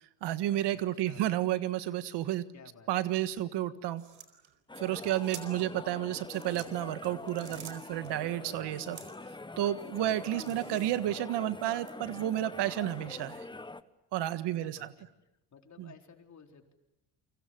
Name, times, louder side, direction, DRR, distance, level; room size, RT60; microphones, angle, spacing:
voice 1, 0.2-2.5 2.9-4.0 4.8-9.0 9.6-13.4 14.1-14.9 15.8-15.9, right 13 dB, 70° right, 13 dB, 1.6 m, -31 dB
voice 2, 0.7-1.3 2.5-2.9 14.5-15.1 15.5-16.7, left 6 dB, 40° left, 4 dB, 4.3 m, -55 dB
sound 1, 4.0-5.7 6.2-8.1 8.8-9.3 9.8-11.2 11.8-11.9, right 7 dB, 45° right, 4.5 m, -50 dB
sound 2, 4.7-13.8, left 2 dB, 10° left, 1.2 m, -45 dB
29.0 x 25.0 x 7.8 m, 0.88 s
supercardioid pair, 85°, 43 cm